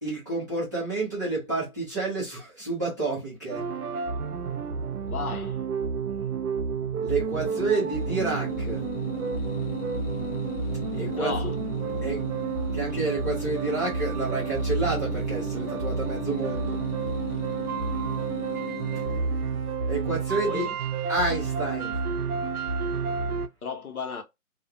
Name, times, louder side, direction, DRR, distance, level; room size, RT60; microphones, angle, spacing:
voice 1, 0.0-3.6 7.0-8.8 10.9-11.3 12.0-12.3 12.7-16.8 19.9-20.6 21.1-22.0, right 3 dB, 15° right, 0.7 m, -29 dB
sound 1, 3.5-23.5, right 5 dB, 80° right, 0.6 m, -30 dB
voice 2, 5.1-5.6 11.1-11.5 20.4-20.8 23.6-24.2, left 5 dB, 75° left, 0.8 m, -34 dB
sound 2, 7.4-19.7, left 6 dB, 40° left, 0.7 m, -38 dB
2.3 x 2.1 x 2.6 m
hypercardioid pair, 165°, 44 cm